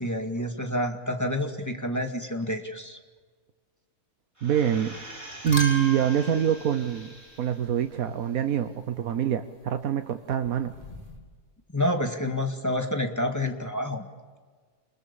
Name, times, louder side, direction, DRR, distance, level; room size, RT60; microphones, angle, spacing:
voice 1, 0.0-3.0 11.7-14.0, left 1 dB, 10° left, 4 dB, 2.0 m, -28 dB
sound 1, 4.4-7.8 8.2-8.3, right 1 dB, 20° right, 5.0 m, -45 dB
voice 2, 4.4-5.0 5.4-10.8, right 9 dB, 85° right, 8 dB, 1.4 m, -25 dB
sound 2, 4.7-5.0 5.3-7.8 10.3-11.2, right 1 dB, 35° left, 3.9 m, -37 dB
27.5 x 20.5 x 7.0 m, 1.5 s
omnidirectional pair, 1.5 m